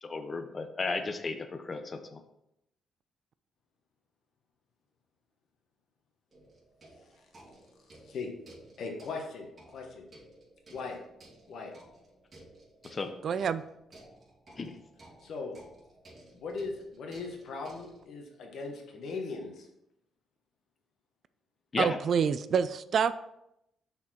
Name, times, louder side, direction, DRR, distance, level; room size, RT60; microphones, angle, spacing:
voice 1, 0.0-2.2 12.8-13.1 14.6-14.8 21.7-22.0, left 3 dB, 35° left, 8 dB, 0.7 m, -34 dB
sound 1, 6.3-18.0, right 1 dB, 35° right, 2.5 m, -56 dB
voice 2, 8.8-10.1 10.7-11.0 11.5-11.7 15.2-15.5 16.3-19.7, left 4 dB, 65° left, 2 dB, 1.3 m, -39 dB
voice 3, 13.2-13.6 21.8-23.1, right 7 dB, 55° right, 14 dB, 0.3 m, -27 dB
6.1 x 4.4 x 4.3 m, 0.82 s
cardioid pair, 90°, 0 cm